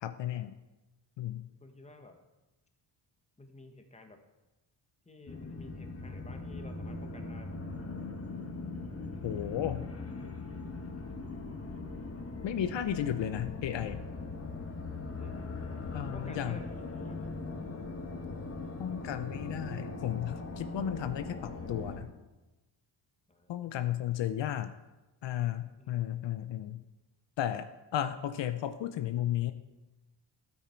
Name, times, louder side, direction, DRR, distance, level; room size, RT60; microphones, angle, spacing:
voice 1, 0.0-0.5 1.2-1.5 9.2-9.8 12.4-14.0 15.9-16.6 18.8-22.1 23.5-24.7 25.2-26.8 27.4-29.5, left 11 dB, 75° left, 10 dB, 0.7 m, -34 dB
voice 2, 1.6-2.2 3.4-4.2 5.0-7.6 15.2-15.6 16.1-17.2 23.3-23.7 25.8-26.3, left 2 dB, 15° left, 5 dB, 1.3 m, -52 dB
sound 1, 5.3-22.0, left 3 dB, 30° left, 1.7 m, -40 dB
12.5 x 9.0 x 4.5 m, 1.1 s
cardioid pair, 115°, 44 cm